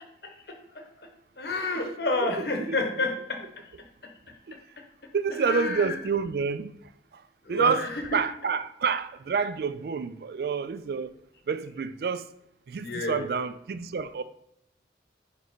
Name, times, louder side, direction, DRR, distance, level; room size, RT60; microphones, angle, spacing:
voice 1, 0.2-0.9 1.4-3.6 4.0-4.1 5.4-6.0 7.4-8.2 12.8-13.2, left 2 dB, 65° left, 1.1 m, -30 dB
voice 2, 2.4-2.8 4.5-4.6 5.1-6.7 7.5-7.8 8.1-11.1 11.5-12.3 12.7-14.2, right 5 dB, 55° right, 0.3 m, -28 dB
9.3 x 3.1 x 4.0 m
head